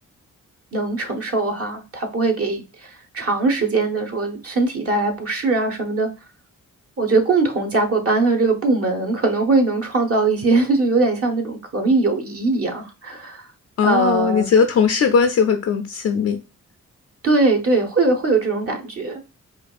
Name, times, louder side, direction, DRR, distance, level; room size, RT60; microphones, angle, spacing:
voice 1, 0.7-6.1 7.0-13.4 13.8-14.5 17.2-19.2, right 3 dB, 50° right, 1.0 m, -21 dB
voice 2, 13.8-16.4, left 6 dB, 55° left, 0.4 m, -18 dB
5.0 x 2.4 x 2.4 m
cardioid pair, 85°, 31 cm